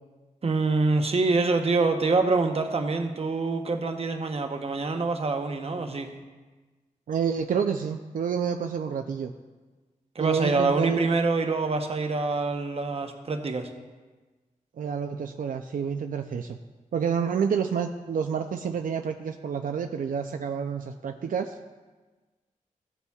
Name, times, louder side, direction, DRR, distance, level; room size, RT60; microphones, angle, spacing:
voice 1, 0.4-6.1 10.1-13.7, right 3 dB, 45° right, 5 dB, 0.9 m, -25 dB
voice 2, 7.1-9.3 10.2-11.1 14.8-16.6 16.9-21.6, right 7 dB, 80° right, 5 dB, 0.4 m, -29 dB
15.5 x 6.9 x 2.3 m, 1.3 s
wide cardioid pair, 105°, 14 cm